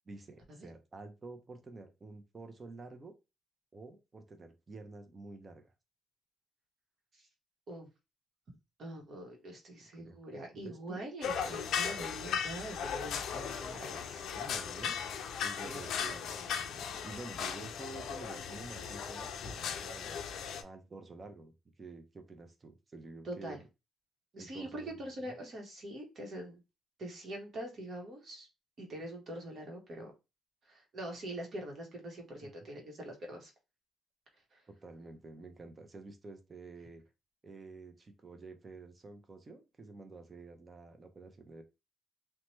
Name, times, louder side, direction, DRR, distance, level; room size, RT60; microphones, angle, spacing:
voice 1, 0.1-3.1 3.7-5.7 10.0-10.4 10.6-11.0 13.9-15.0 15.4-20.2 20.6-23.6 24.4-24.9 25.2-25.4 32.4-32.5 34.7-37.0 37.4-41.6, right 3 dB, 30° right, 0.6 m, -49 dB
voice 2, 8.8-14.2 15.6-16.1 23.2-23.6 24.3-26.6 27.0-28.5 28.8-30.1 30.7-33.5 34.5-34.6, right 1 dB, 55° right, 1.1 m, -44 dB
sound 1, 11.2-20.6, left 7 dB, 75° left, 0.4 m, -37 dB
2.8 x 2.2 x 3.1 m
cardioid pair, 90°, 0 cm